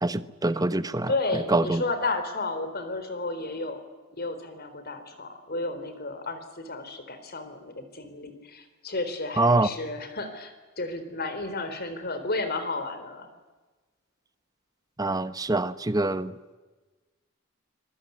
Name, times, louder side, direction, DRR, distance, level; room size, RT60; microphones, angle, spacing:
voice 1, 0.0-1.8 9.4-9.7 15.0-16.3, right 2 dB, 20° right, 13 dB, 1.0 m, -25 dB
voice 2, 1.1-3.8 4.1-13.3, left 2 dB, 50° left, 9 dB, 4.0 m, -32 dB
26.0 x 22.5 x 9.6 m, 1.2 s
head